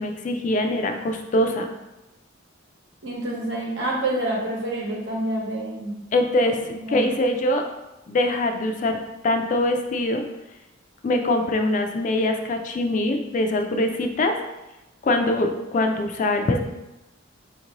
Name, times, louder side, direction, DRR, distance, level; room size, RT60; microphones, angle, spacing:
voice 1, 0.0-1.7 6.1-6.6 6.9-7.6 8.1-9.0 9.2-10.2 11.0-14.4 15.0-16.6, left 1 dB, 40° left, 5 dB, 0.3 m, -23 dB
voice 2, 3.0-5.9 6.3-6.5 6.8-7.0, right 1 dB, 65° right, -4 dB, 1.0 m, -27 dB
4.3 x 2.6 x 2.9 m, 1.0 s
head